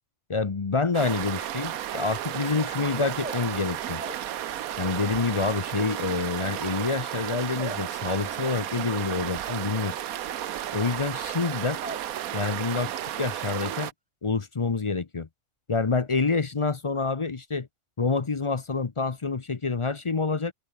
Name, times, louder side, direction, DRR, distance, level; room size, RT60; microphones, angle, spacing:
voice 1, 0.3-4.0 4.8-10.0 10.7-11.8 12.3-12.9 13.2-13.9 14.2-15.3 15.7-17.7 18.0-20.5, left 4 dB, 30° left, 0.6 m, -27 dB
sound 1, 0.9-13.9, right 11 dB, 85° right, 1.3 m, -33 dB
sound 2, 3.2-5.1 5.4-12.2 12.5-13.0 13.3-13.8, right 1 dB, 10° right, 0.4 m, -44 dB
open air
omnidirectional pair, 1.5 m